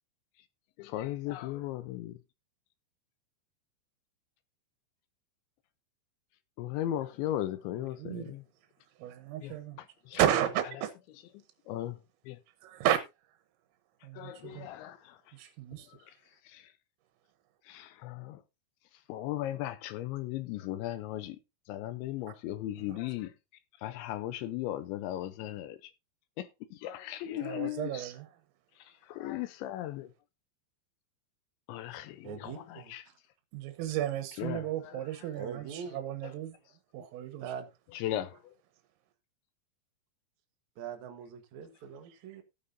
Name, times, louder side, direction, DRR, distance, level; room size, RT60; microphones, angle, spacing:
voice 1, 0.8-2.2 6.6-8.4 9.4-9.5 10.1-10.2 11.7-12.0 12.3-12.4 14.2-15.2 16.5-16.6 17.7-18.4 19.1-21.4 21.7-23.3 23.8-25.8 26.4-27.9 29.1-30.1 31.7-32.5 32.9-33.0 34.4-34.7 38.0-38.4, left 13 dB, 80° left, 2.8 m, -36 dB
voice 2, 8.0-8.3 9.0-9.8 10.1-10.9 12.6-13.0 14.0-14.7 15.3-15.9 22.9-23.0 27.4-28.3 33.5-36.6 36.9-37.4, right 11 dB, 85° right, 3.7 m, -33 dB
voice 3, 32.2-33.2 35.3-36.0 37.4-37.7 40.8-42.4, right 7 dB, 65° right, 1.8 m, -42 dB
15.5 x 9.0 x 2.7 m
omnidirectional pair, 5.9 m